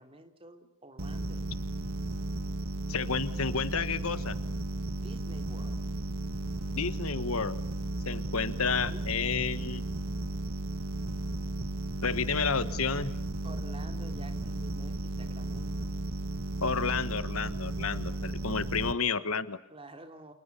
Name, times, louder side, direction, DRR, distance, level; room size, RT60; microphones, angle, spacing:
voice 1, 0.0-1.6 5.0-5.9 8.5-8.6 8.9-9.3 13.4-15.9 18.6-18.8 19.7-20.3, right 1 dB, 25° right, 6 dB, 3.2 m, -50 dB
sound 1, 1.0-18.9, right 2 dB, 70° right, 1.5 m, -34 dB
voice 2, 2.9-4.4 6.7-7.6 8.0-9.9 12.0-13.1 16.6-19.6, left 5 dB, 70° left, 13 dB, 1.5 m, -31 dB
30.0 x 28.0 x 7.0 m, 0.71 s
head